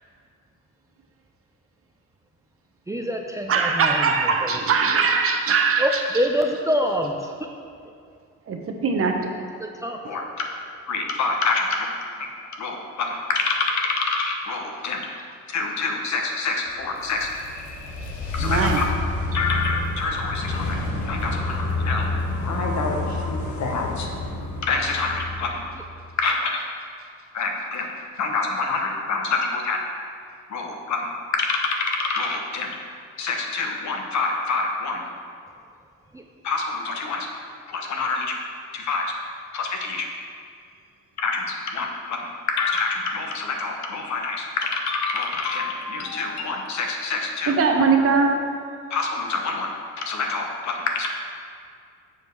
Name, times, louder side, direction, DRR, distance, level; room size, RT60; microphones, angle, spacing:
voice 1, 2.9-4.0 4.4-4.5 5.8-7.2 9.8-10.0 36.1-36.2, equal, 10° right, 2 dB, 0.4 m, -25 dB
voice 2, 3.5-6.0 8.5-9.2 18.4-18.8 47.5-48.4, right 5 dB, 50° right, 3 dB, 0.9 m, -21 dB
voice 3, 10.9-11.9 12.5-15.1 15.5-17.3 18.3-18.8 19.3-20.8 21.0-22.1 22.4-24.1 24.6-25.6 26.2-26.5 27.3-27.9 28.2-29.8 30.5-32.7 33.2-35.0 36.4-37.3 37.7-38.4 38.7-39.1 39.5-40.1 41.2-47.6 48.9-49.7 50.0-51.1, left 4 dB, 70° left, 2 dB, 1.0 m, -26 dB
sound 1, 16.8-26.1, left 2 dB, 85° left, 1.0 m, -28 dB
7.2 x 5.0 x 4.6 m, 2.3 s
cardioid pair, 90°, 30 cm